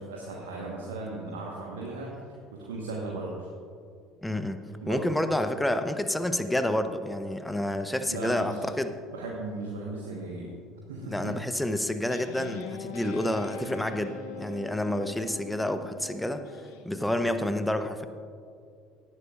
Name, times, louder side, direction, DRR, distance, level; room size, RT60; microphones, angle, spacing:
voice 1, 0.0-2.1 2.5-3.5 4.8-5.1 8.1-8.7 9.1-10.5 10.9-11.4, right 2 dB, 70° right, -2 dB, 1.2 m, -36 dB
voice 2, 4.2-4.6 4.9-8.9 11.0-16.4 16.8-18.1, left 1 dB, 5° left, 9 dB, 0.7 m, -29 dB
Guitar, 12.1-16.8, left 3 dB, 65° left, 1.1 m, -42 dB
17.5 x 11.0 x 2.5 m, 2.4 s
figure-of-eight pair, 60°, 0 cm